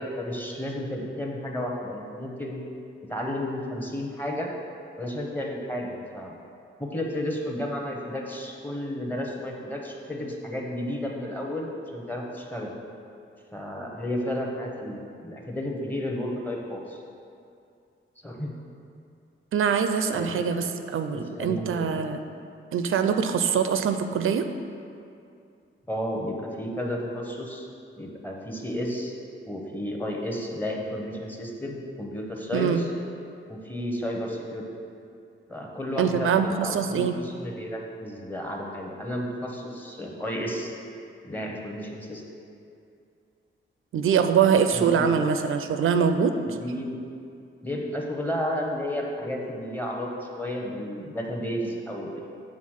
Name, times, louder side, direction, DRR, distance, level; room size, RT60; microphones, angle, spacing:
voice 1, 0.0-2.6 3.1-4.5 5.0-6.4 6.8-12.7 13.5-17.0 18.2-18.5 20.1-20.4 21.1-21.9 25.9-27.7 28.0-29.1 29.5-32.9 33.5-34.6 35.5-40.7 41.2-42.2 44.7-45.2 46.4-47.0 47.6-52.2, left 1 dB, 10° left, -1 dB, 0.8 m, -32 dB
voice 2, 19.5-22.2 22.7-24.5 32.5-32.8 36.0-37.2 43.9-46.6, right 7 dB, 80° right, 8 dB, 0.4 m, -23 dB
7.4 x 3.9 x 6.4 m, 2.5 s
wide cardioid pair, 175°, 21 cm